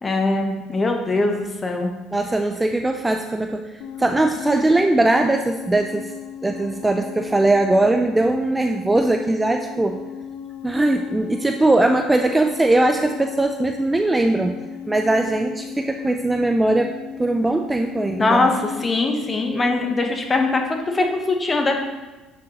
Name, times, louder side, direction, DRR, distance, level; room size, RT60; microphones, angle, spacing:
voice 1, 0.0-1.9 18.2-21.8, left 2 dB, 20° left, 3 dB, 0.9 m, -21 dB
voice 2, 2.1-3.7 4.0-6.1 6.4-10.0 10.6-14.6 14.9-18.6, right 2 dB, 10° right, 4 dB, 0.3 m, -20 dB
sound 1, 3.8-19.2, left 8 dB, 65° left, 0.5 m, -36 dB
7.4 x 6.1 x 2.9 m, 1.2 s
cardioid pair, 130°, 0 cm